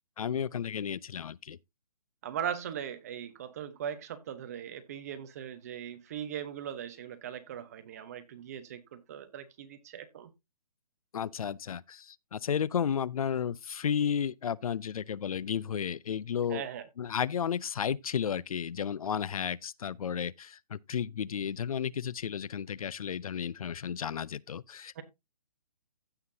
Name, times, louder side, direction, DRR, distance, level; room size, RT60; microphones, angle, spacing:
voice 1, 0.2-1.6 11.1-16.7 17.0-25.0, left 8 dB, 60° left, 0.5 m, -33 dB
voice 2, 2.2-10.3 16.5-16.8 25.0-25.1, right 9 dB, 25° right, 0.9 m, -39 dB
15.5 x 5.8 x 2.7 m
hypercardioid pair, 170°, 21 cm